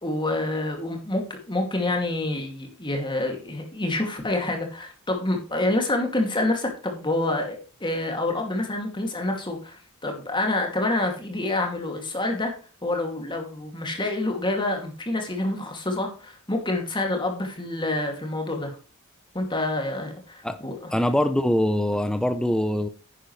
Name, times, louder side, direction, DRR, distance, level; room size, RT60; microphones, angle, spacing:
voice 1, 0.0-12.5 12.8-18.8 19.3-20.9, left 2 dB, 20° left, 2.5 m, -27 dB
voice 2, 20.9-22.9, left 1 dB, 5° left, 0.6 m, -23 dB
10.5 x 10.0 x 3.3 m
head